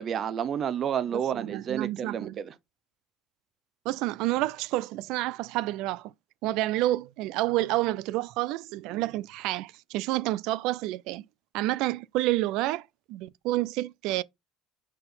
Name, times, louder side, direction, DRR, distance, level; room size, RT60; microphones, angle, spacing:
voice 1, 0.0-2.5, right 8 dB, 40° right, 0.9 m, -30 dB
voice 2, 1.1-2.4 3.9-6.1 6.4-11.2 11.5-14.2, right 17 dB, 70° right, 0.4 m, -29 dB
5.8 x 4.4 x 3.8 m
cardioid pair, 130°, 0 cm